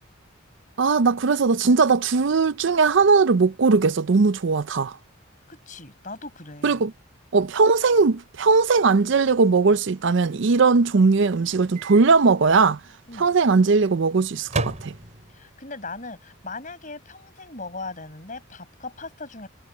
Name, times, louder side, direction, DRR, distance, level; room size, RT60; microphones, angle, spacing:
voice 1, 0.8-5.0 6.6-6.9 7.3-12.8 13.2-14.9, right 4 dB, 60° right, 0.5 m, -19 dB
voice 2, 5.5-6.8 13.1-13.3 15.3-19.5, left 3 dB, 40° left, 5.0 m, -38 dB
Microwave oven, 11.7-12.1 12.4-12.5 14.4-15.5, right 2 dB, 30° right, 6.5 m, -31 dB
head